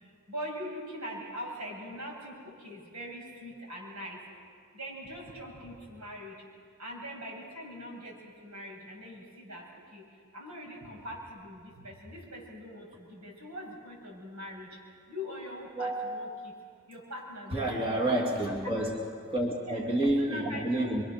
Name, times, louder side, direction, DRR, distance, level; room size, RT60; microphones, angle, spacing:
voice 1, 0.3-4.2 4.7-6.4 6.8-9.7 9.9-10.1 10.3-14.7 15.1-16.5 16.9-18.0 18.8-18.9 19.7-19.8 20.2-20.9, equal, 80° right, -2 dB, 7.8 m, -42 dB
voice 2, 15.8-16.2 17.5-21.0, right 1 dB, 25° right, -2 dB, 2.5 m, -29 dB
27.0 x 24.5 x 6.7 m, 2.2 s
head